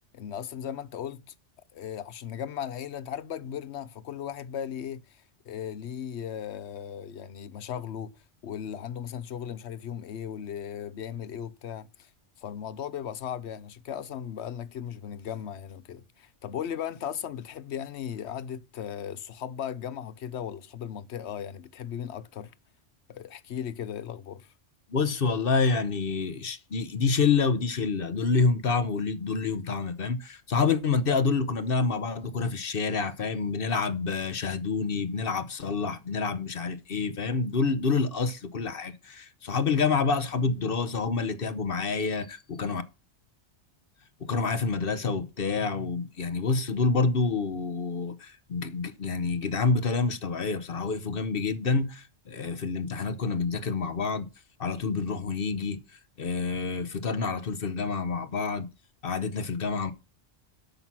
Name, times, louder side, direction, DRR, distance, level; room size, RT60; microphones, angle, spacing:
voice 1, 0.1-1.2 1.7-8.1 8.4-12.1 12.4-22.5 23.1-24.5, left 9 dB, 70° left, 1.0 m, -37 dB
voice 2, 24.9-42.8 44.2-54.3 54.6-58.7 59.0-59.9, left 4 dB, 55° left, 1.1 m, -28 dB
12.0 x 5.8 x 5.9 m
omnidirectional pair, 1.2 m